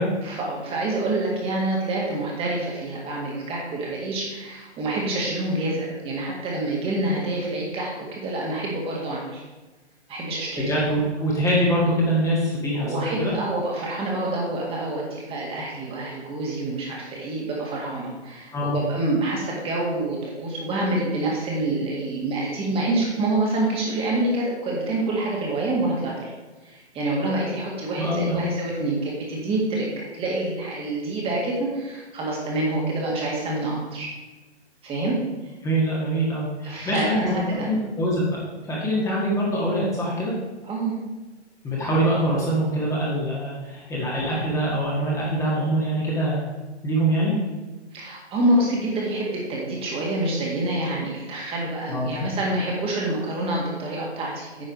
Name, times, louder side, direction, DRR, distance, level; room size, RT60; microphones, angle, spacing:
voice 1, 0.2-9.4 10.1-10.7 12.7-26.3 26.6-34.1 34.8-35.2 36.6-37.7 40.6-40.9 47.9-54.7, right 2 dB, 15° right, -2 dB, 1.9 m, -27 dB
voice 2, 10.6-13.3 18.5-18.8 28.0-28.4 35.6-37.3 37.6-40.3 41.6-46.5 46.8-47.4 51.9-52.1, right 1 dB, 10° left, -5 dB, 1.6 m, -24 dB
9.5 x 5.4 x 5.3 m, 1.2 s
figure-of-eight pair, 130°, 34 cm